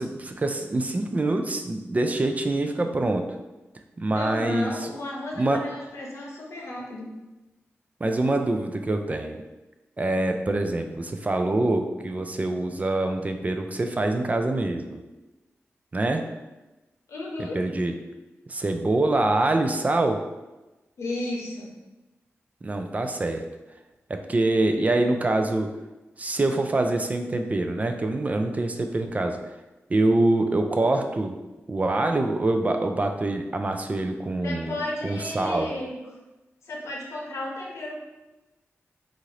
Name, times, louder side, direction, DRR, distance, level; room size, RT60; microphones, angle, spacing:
voice 1, 0.0-3.2 4.0-4.9 5.4-5.6 8.0-9.4 10.0-15.0 15.9-16.2 17.5-17.9 18.5-20.2 22.6-23.4 24.1-25.7 26.2-29.4 29.9-31.3 31.7-35.7, right 2 dB, 30° right, 5 dB, 0.3 m, -25 dB
voice 2, 4.1-7.1 17.1-17.6 21.0-21.7 34.4-36.0 36.6-38.0, left 1 dB, 85° left, -2 dB, 0.7 m, -33 dB
2.7 x 2.4 x 3.1 m, 1.1 s
cardioid pair, 70°, 5 cm